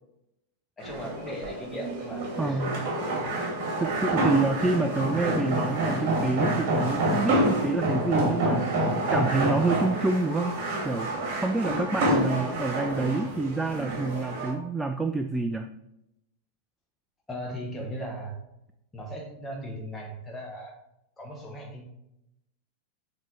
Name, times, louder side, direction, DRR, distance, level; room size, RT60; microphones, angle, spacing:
voice 1, 0.8-3.3 17.3-18.4 18.9-20.8 21.2-21.9, equal, 15° left, 0 dB, 1.6 m, -38 dB
sound 1, 0.8-14.5, right 1 dB, 45° right, 1.8 m, -28 dB
voice 2, 2.4-2.8 3.8-8.8 9.1-15.7, right 3 dB, 5° right, 7 dB, 0.3 m, -28 dB
7.9 x 3.3 x 4.3 m, 0.85 s
figure-of-eight pair, 90°, 0 cm